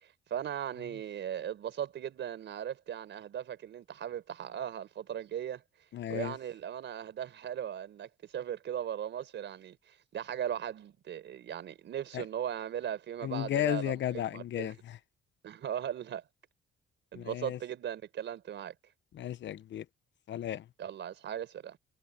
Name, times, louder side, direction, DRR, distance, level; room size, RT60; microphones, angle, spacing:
voice 1, 0.0-5.6 6.1-14.8 15.4-16.2 17.1-18.7 20.8-21.8, right 9 dB, 65° right, 4.4 m, -38 dB
voice 2, 5.9-6.3 12.1-12.2 13.2-15.0 17.1-17.6 19.1-19.8 20.3-20.6, left 12 dB, 65° left, 1.0 m, -34 dB
cardioid pair, 90°, 20 cm